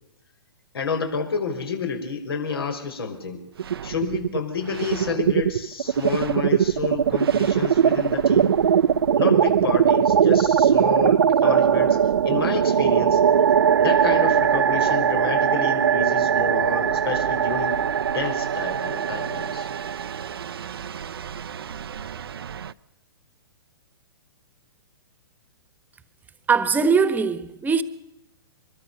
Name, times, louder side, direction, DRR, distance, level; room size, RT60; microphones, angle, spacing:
voice 1, 0.7-3.4 3.8-8.5 9.2-12.0 12.2-13.2 13.8-17.9 18.1-19.7, left 5 dB, 70° left, 5.4 m, -29 dB
sound 1, 3.6-4.4 4.7-22.7, right 8 dB, 70° right, 0.8 m, -21 dB
voice 2, 26.5-27.8, right 5 dB, 15° right, 1.4 m, -20 dB
25.0 x 21.5 x 6.9 m
figure-of-eight pair, 115°, 13 cm